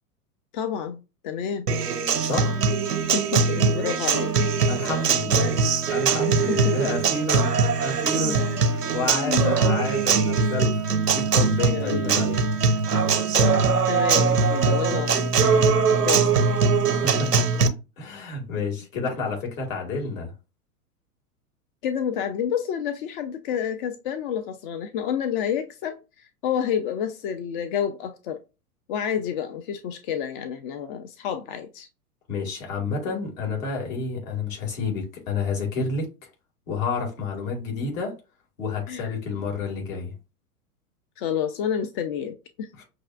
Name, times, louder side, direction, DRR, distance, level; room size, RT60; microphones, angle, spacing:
voice 1, 0.5-1.7 3.1-4.3 6.3-6.7 8.1-8.6 9.1-9.6 11.7-12.2 13.3-15.7 16.0-16.3 19.1-19.2 21.8-28.4 28.9-31.9 38.9-39.2 41.2-42.8, left 8 dB, 35° left, 0.4 m, -29 dB
Acoustic guitar, 1.7-17.7, right 5 dB, 85° right, 0.7 m, -22 dB
voice 2, 2.2-2.6 4.7-5.5 5.8-7.5 7.8-12.4 16.9-17.5 18.0-20.3 32.3-36.1 36.7-38.1 38.6-40.1 42.8-42.9, left 4 dB, 60° left, 2.0 m, -30 dB
6.0 x 2.5 x 2.3 m
figure-of-eight pair, 95°, 45 cm